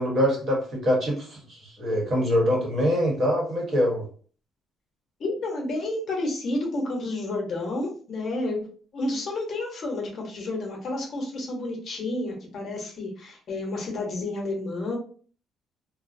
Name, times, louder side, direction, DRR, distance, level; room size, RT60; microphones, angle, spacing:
voice 1, 0.0-4.0, equal, 40° right, -2 dB, 1.0 m, -24 dB
voice 2, 5.2-8.6 8.9-15.0, left 2 dB, 45° left, -1 dB, 0.8 m, -30 dB
2.6 x 2.0 x 2.5 m, 0.43 s
cardioid pair, 145°, 0 cm